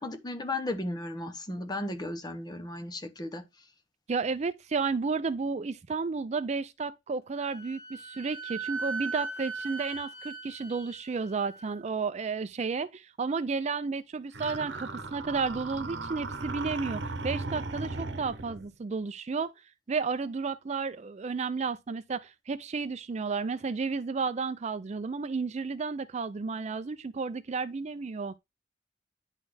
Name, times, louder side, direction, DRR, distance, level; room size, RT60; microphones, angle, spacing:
voice 1, 0.0-3.4, left 2 dB, 20° left, 0.9 m, -35 dB
voice 2, 4.1-19.5 19.9-28.4, right 4 dB, 40° right, 0.4 m, -32 dB
Wind instrument woodwind instrument, 7.4-11.8, right 4 dB, 55° left, 3.3 m, -39 dB
sound 1, 14.3-18.7, right 3 dB, 70° right, 1.0 m, -37 dB
9.8 x 4.2 x 3.3 m
head